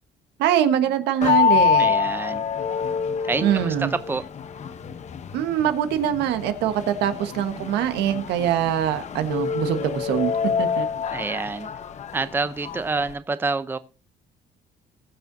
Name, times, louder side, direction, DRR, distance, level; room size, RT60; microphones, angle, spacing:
voice 1, 0.4-1.9 3.4-3.9 5.3-10.9, right 10 dB, 85° right, 1.4 m, -23 dB
sound 1, 1.2-13.1, left 6 dB, 45° left, 0.9 m, -26 dB
voice 2, 1.8-2.4 3.3-4.2 11.1-11.7 12.1-13.8, right 3 dB, 10° right, 0.6 m, -27 dB
20.0 x 6.7 x 2.7 m
cardioid pair, 110°, 17 cm